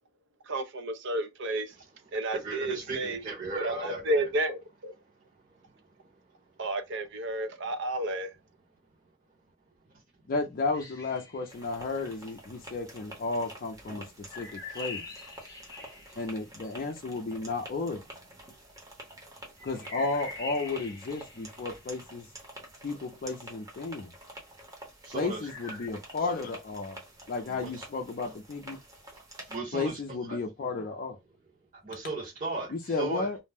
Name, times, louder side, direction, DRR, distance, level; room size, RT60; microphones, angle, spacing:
voice 1, 0.5-1.7 2.1-3.2 3.5-4.9 6.6-8.3, right 1 dB, 60° right, 0.5 m, -31 dB
voice 2, 2.4-4.2 25.0-25.4 27.5-27.7 29.5-30.0 30.3-30.4 31.8-33.3, right 3 dB, 40° right, 1.0 m, -36 dB
voice 3, 10.3-14.0 14.4-15.0 16.2-18.0 19.6-22.3 22.8-24.1 25.1-27.0 27.3-28.8 29.7-31.2 32.7-33.4, left 3 dB, 45° left, 0.4 m, -33 dB
sound 1, 10.7-11.7 14.3-16.7 19.6-22.2 25.4-25.9, left 3 dB, 15° left, 0.7 m, -44 dB
sound 2, 11.5-29.6, right 1 dB, 15° right, 0.8 m, -49 dB
2.5 x 2.0 x 3.4 m
head